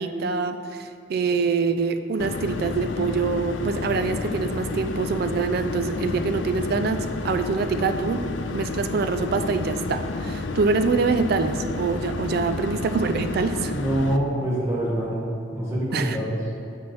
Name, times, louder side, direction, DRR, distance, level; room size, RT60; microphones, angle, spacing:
voice 1, 0.0-8.2 8.5-13.7 15.9-16.2, right 4 dB, 55° right, 9 dB, 0.4 m, -25 dB
sound 1, 2.2-14.2, left 3 dB, 70° left, 0.4 m, -30 dB
voice 2, 13.7-15.3 15.5-16.4, right 1 dB, 15° right, -6 dB, 1.2 m, -25 dB
6.3 x 4.1 x 5.8 m, 2.7 s
head